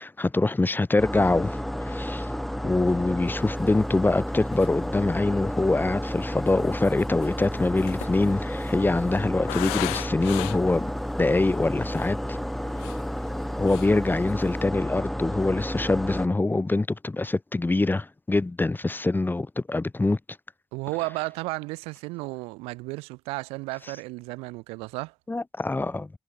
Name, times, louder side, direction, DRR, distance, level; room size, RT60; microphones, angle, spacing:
voice 1, 0.0-2.3 2.6-12.4 13.6-20.2 25.3-26.1, left 2 dB, 20° left, 1.1 m, -24 dB
sound 1, 1.0-16.3, equal, ahead, 0.5 m, -31 dB
sound 2, 3.7-3.8 4.2-4.3 4.5-5.0 5.8-10.8 11.4-11.5 11.8-12.2 12.6-13.4 13.7-14.0 14.3-14.6, left 33 dB, 80° left, 4.6 m, -38 dB
voice 2, 20.7-25.1, right 24 dB, 75° right, 1.2 m, -33 dB
hypercardioid pair, 40°, 10 cm